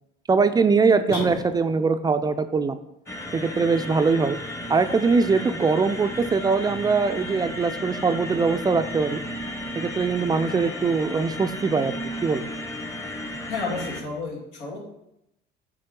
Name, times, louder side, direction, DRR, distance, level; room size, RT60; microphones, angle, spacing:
voice 1, 0.3-2.8 3.3-4.4 4.7-9.2 9.8-11.9 12.2-12.4, right 4 dB, 20° right, 9 dB, 0.4 m, -22 dB
sound 1, 1.1-2.0, left 3 dB, 55° left, 1.7 m, -34 dB
sound 2, 3.1-14.0, left 1 dB, 15° left, 1.0 m, -34 dB
voice 2, 13.5-14.9, left 4 dB, 80° left, -2 dB, 2.5 m, -31 dB
8.6 x 3.7 x 5.2 m, 0.82 s
cardioid pair, 115°, 19 cm